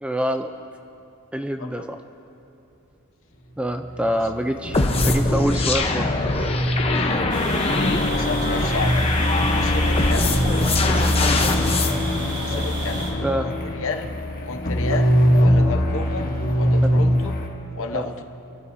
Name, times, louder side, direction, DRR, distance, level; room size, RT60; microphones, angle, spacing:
voice 1, 0.0-0.5 1.3-2.0 3.6-6.3 10.9-11.0 13.2-13.5 17.9-18.0, equal, 5° right, 6 dB, 0.4 m, -26 dB
sound 1, 3.6-17.5, equal, 40° left, 1.4 m, -22 dB
sound 2, 4.7-11.9, left 3 dB, 25° left, 0.8 m, -24 dB
voice 2, 6.7-7.8 8.0-9.2 9.5-10.5 12.4-14.1 14.4-17.4 17.7-18.2, left 4 dB, 65° left, 4 dB, 0.9 m, -32 dB
sound 3, 7.3-13.1, right 1 dB, 55° right, 3.8 m, -33 dB
29.0 x 12.0 x 2.7 m, 2.9 s
head